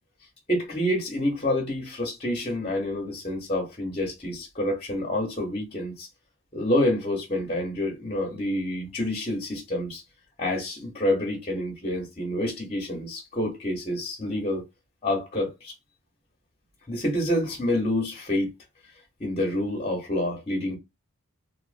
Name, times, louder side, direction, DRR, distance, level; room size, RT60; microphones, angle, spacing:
voice 1, 0.5-6.1 6.5-10.0 10.4-14.6 15.0-15.7 16.9-18.5 19.2-20.8, left 1 dB, 25° left, 0.9 m, -28 dB
2.7 x 2.5 x 2.5 m
head